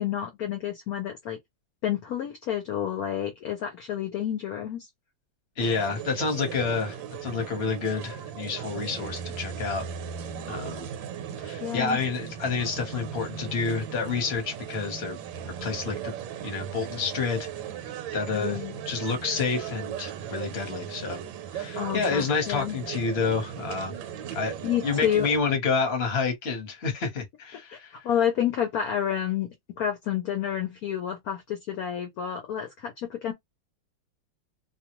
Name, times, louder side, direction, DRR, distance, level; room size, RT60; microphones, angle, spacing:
voice 1, 0.0-1.4 1.8-4.9 10.4-10.7 11.6-12.0 18.3-18.8 21.8-22.8 24.6-25.3 27.7-27.8 28.0-33.3, left 9 dB, 65° left, 1.0 m, -29 dB
voice 2, 5.6-9.9 10.5-10.9 11.4-15.2 15.6-16.1 16.4-17.5 18.1-18.6 18.9-21.2 21.5-23.9 24.3-24.5 24.8-28.1, left 5 dB, 40° left, 1.1 m, -29 dB
sound 1, 5.6-25.4, right 8 dB, 80° right, 1.3 m, -37 dB
2.9 x 2.3 x 2.9 m
omnidirectional pair, 2.1 m